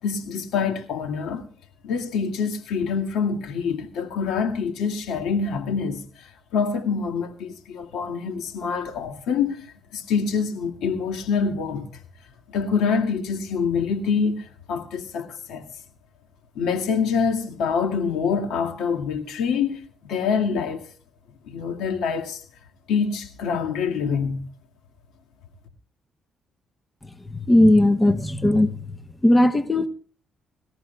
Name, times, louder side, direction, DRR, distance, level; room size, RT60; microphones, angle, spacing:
voice 1, 0.0-1.5 1.8-12.0 12.5-15.6 16.6-20.9 21.4-22.4 22.9-24.4, left 6 dB, 85° left, 2.1 m, -26 dB
voice 2, 27.3-28.7 29.2-29.9, left 1 dB, 15° left, 1.0 m, -17 dB
24.0 x 14.0 x 2.3 m
cardioid pair, 90°, 0 cm